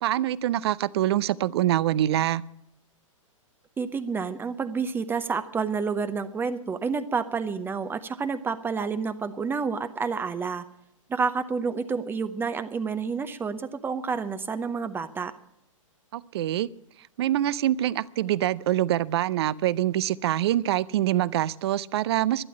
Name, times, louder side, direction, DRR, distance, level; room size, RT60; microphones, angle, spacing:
voice 1, 0.0-2.4 16.1-16.7 17.2-22.4, right 13 dB, 50° right, 20 dB, 0.6 m, -25 dB
voice 2, 3.8-10.6 11.1-15.3, right 5 dB, 10° right, 11 dB, 0.7 m, -29 dB
12.0 x 11.0 x 8.7 m, 0.77 s
figure-of-eight pair, 110°, 17 cm